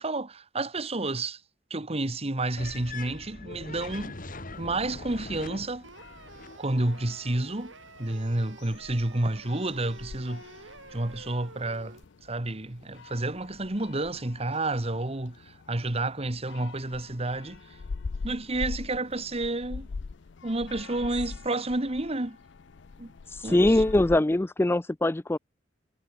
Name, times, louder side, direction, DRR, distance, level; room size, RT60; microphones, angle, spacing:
voice 1, 0.0-1.4 1.7-4.2 4.6-5.9 6.6-7.7 8.0-10.5 10.9-17.8 18.2-19.9 20.4-22.4 23.0-23.1 23.4-23.6, right 2 dB, 35° right, 1.6 m, -30 dB
sound 1, 2.6-6.6, left 3 dB, 45° left, 2.8 m, -41 dB
sound 2, 4.5-24.2, left 4 dB, 65° left, 0.5 m, -43 dB
sound 3, 5.8-12.0, right 3 dB, 90° right, 4.7 m, -50 dB
voice 2, 23.3-25.4, left 1 dB, 10° left, 0.4 m, -23 dB
head